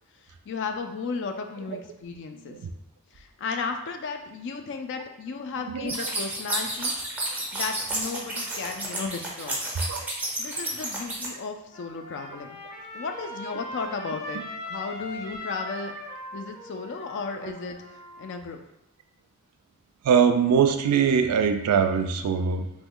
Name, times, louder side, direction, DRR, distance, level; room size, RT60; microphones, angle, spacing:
voice 1, 0.5-2.6 3.1-7.0 7.5-9.6 10.4-12.6 12.9-16.0 16.3-18.6, left 4 dB, 55° left, 6 dB, 0.3 m, -34 dB
voice 2, 2.3-2.7 5.7-5.9 9.9-10.0 20.0-22.7, right 7 dB, 85° right, 7 dB, 0.3 m, -22 dB
sound 1, 5.9-11.3, right 2 dB, 10° right, 0.5 m, -31 dB
Trumpet, 11.7-18.4, left 1 dB, 75° left, 0.9 m, -39 dB
3.0 x 2.1 x 3.6 m, 0.82 s
head